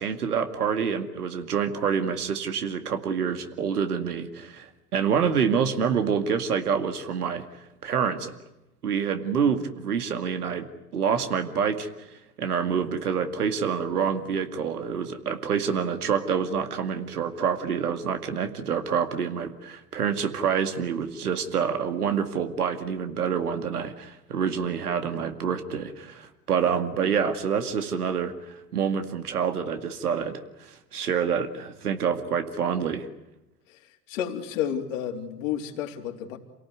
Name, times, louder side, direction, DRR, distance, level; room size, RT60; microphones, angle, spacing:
voice 1, 0.0-7.5 7.8-8.3 8.8-11.9 12.4-30.4 30.9-33.1, right 7 dB, 70° right, 7 dB, 2.3 m, -27 dB
voice 2, 33.7-36.4, left 9 dB, 55° left, 3 dB, 3.7 m, -31 dB
28.5 x 18.0 x 9.7 m, 0.94 s
figure-of-eight pair, 80°, 47 cm